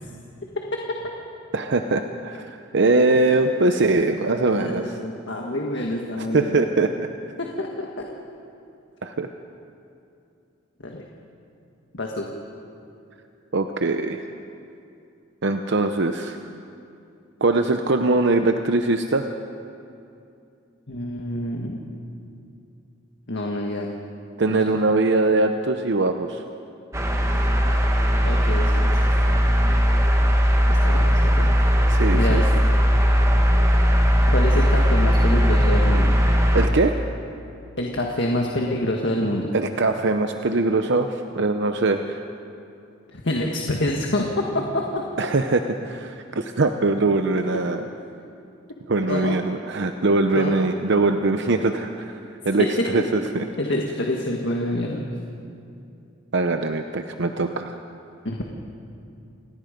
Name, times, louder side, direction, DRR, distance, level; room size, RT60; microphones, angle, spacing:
voice 1, 1.5-4.9 6.2-7.1 9.0-9.3 13.5-14.2 15.4-16.4 17.4-19.3 24.4-26.4 31.9-32.4 36.5-37.1 39.5-42.2 45.2-47.9 48.9-52.2 52.4-53.4 56.3-57.7, right 3 dB, 60° right, 6 dB, 0.8 m, -22 dB
voice 2, 4.6-6.6 7.4-8.1 10.8-11.0 11.9-12.3 20.9-21.8 23.3-23.9 24.5-24.8 27.6-27.8 28.2-29.4 30.7-31.5 31.8-31.9 32.1-32.4 34.3-36.1 37.8-39.5 43.1-45.0 49.1-49.4 50.3-50.6 52.6-52.7 53.6-55.0 58.3-58.5, left 1 dB, 60° left, 0 dB, 1.8 m, -27 dB
sound 1, 26.9-36.7, equal, 15° right, 1.8 m, -18 dB
29.0 x 18.5 x 5.3 m, 2.6 s
head